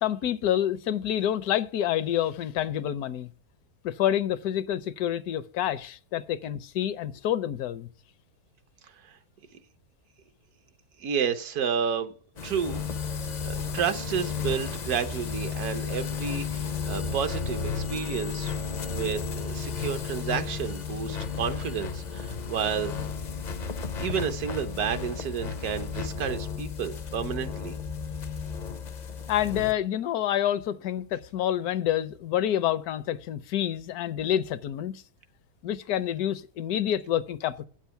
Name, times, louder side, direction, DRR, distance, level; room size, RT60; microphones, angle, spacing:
voice 1, 0.0-3.3 3.8-7.9 29.3-35.0 35.6-37.7, left 11 dB, 75° left, 1.1 m, -28 dB
voice 2, 11.0-12.1 12.4-12.8 13.4-18.6 18.9-23.0 24.0-27.7, right 7 dB, 75° right, 1.3 m, -31 dB
sound 1, 12.4-29.7, left 6 dB, 60° left, 0.4 m, -33 dB
8.5 x 7.3 x 5.6 m
omnidirectional pair, 1.6 m